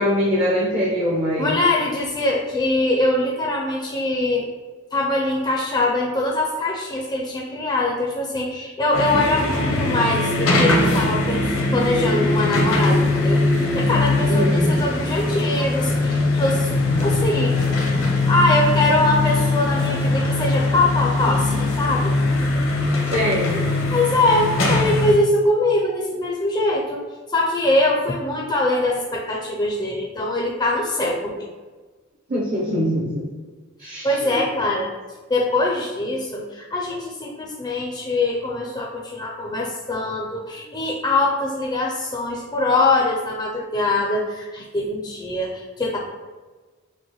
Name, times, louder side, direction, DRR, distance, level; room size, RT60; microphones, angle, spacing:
voice 1, 0.0-1.6 14.3-14.7 23.1-23.6 32.3-33.2 33.8-34.4, equal, 45° right, -5 dB, 0.7 m, -23 dB
voice 2, 1.4-4.5 4.9-16.7 17.0-17.6 18.3-22.1 23.9-27.0 27.3-31.5 33.8-34.9 35.3-46.0, left 2 dB, 20° left, -2 dB, 0.4 m, -22 dB
sound 1, 8.9-25.1, left 2 dB, 80° left, 0.8 m, -21 dB
6.0 x 2.1 x 3.0 m, 1.3 s
head